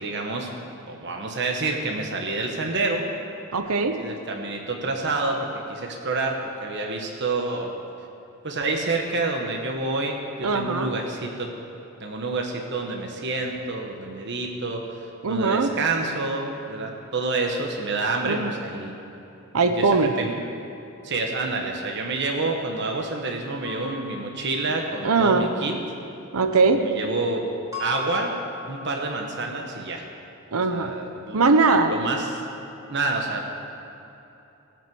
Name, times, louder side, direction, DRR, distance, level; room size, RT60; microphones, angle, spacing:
voice 1, 0.0-3.1 4.0-7.7 8.4-11.5 12.0-18.9 19.8-19.9 20.2-20.3 21.0-25.7 26.8-27.5 27.8-28.3 28.7-30.0 30.7-31.4 31.9-32.4 32.9-33.5, right 3 dB, 55° right, 2 dB, 1.2 m, -28 dB
voice 2, 3.5-4.0 10.4-10.9 15.2-15.7 18.2-18.5 19.5-20.1 25.0-25.5 26.3-26.8 30.5-30.9 31.3-31.9, right 4 dB, 85° right, 8 dB, 0.8 m, -20 dB
sound 1, 23.6-24.8 27.7-29.1, left 4 dB, 15° right, 3.7 m, -37 dB
18.5 x 6.2 x 7.8 m, 3.0 s
head